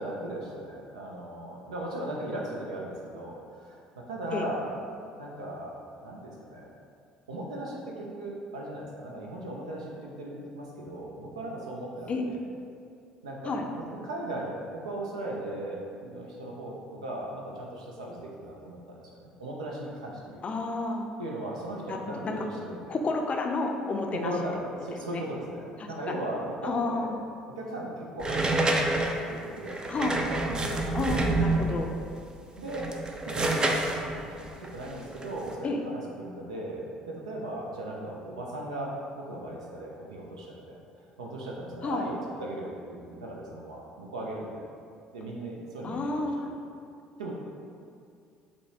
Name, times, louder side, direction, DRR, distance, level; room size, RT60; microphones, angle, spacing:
voice 1, 0.0-4.7 5.2-6.7 7.3-12.4 13.2-13.6 13.9-20.4 21.2-23.0 24.1-27.1 27.5-28.8 29.3-29.8 30.1-31.6 32.6-32.9 33.3-40.8 41.2-44.6 45.1-46.6 47.2-47.3, right 1 dB, 85° right, -2 dB, 0.5 m, -38 dB
voice 2, 20.4-21.1 21.9-22.4 22.9-24.3 25.1-25.2 26.1-26.2 26.6-27.2 29.9-30.2 30.9-31.9 35.6-35.8 41.8-42.0 45.8-46.5, left 3 dB, 35° left, 3 dB, 0.4 m, -30 dB
sound 1, 28.2-31.9 32.6-35.5, right 2 dB, 25° right, 0.4 m, -28 dB
5.3 x 2.2 x 2.8 m, 2.4 s
hypercardioid pair, 55°, 3 cm